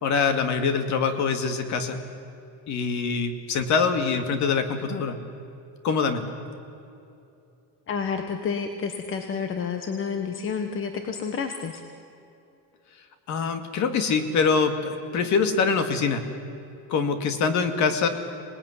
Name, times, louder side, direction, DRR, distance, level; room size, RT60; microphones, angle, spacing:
voice 1, 0.0-2.0 2.7-5.2 5.8-6.3 13.3-16.2 16.9-18.1, left 5 dB, 50° left, 8 dB, 2.3 m, -24 dB
voice 2, 7.9-11.8, left 6 dB, 35° left, 6 dB, 1.4 m, -30 dB
26.5 x 19.0 x 9.9 m, 2.7 s
cardioid pair, 155°, 36 cm